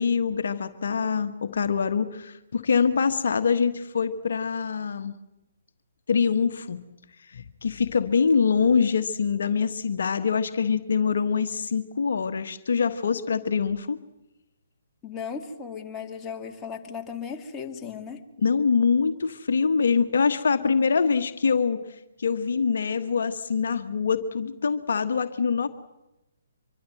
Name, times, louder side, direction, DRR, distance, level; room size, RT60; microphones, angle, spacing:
voice 1, 0.0-5.1 6.1-6.8 7.3-14.0 18.4-25.7, left 5 dB, 65° left, 9 dB, 1.3 m, -24 dB
voice 2, 15.0-18.2, left 6 dB, 15° left, 2 dB, 2.4 m, -36 dB
25.0 x 23.5 x 7.8 m, 0.95 s
figure-of-eight pair, 135°, 0 cm